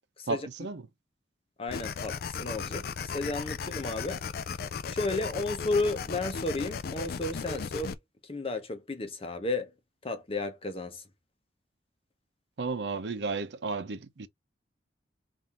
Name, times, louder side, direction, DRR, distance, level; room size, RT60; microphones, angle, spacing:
voice 1, 0.3-0.9 12.6-14.3, right 4 dB, 75° right, 0.6 m, -33 dB
voice 2, 1.6-2.8 3.1-4.2 4.9-7.9 8.3-9.7 10.0-11.0, left 2 dB, 30° left, 0.8 m, -33 dB
sound 1, 1.7-8.0, left 6 dB, 55° left, 0.4 m, -36 dB
3.6 x 2.6 x 4.2 m
head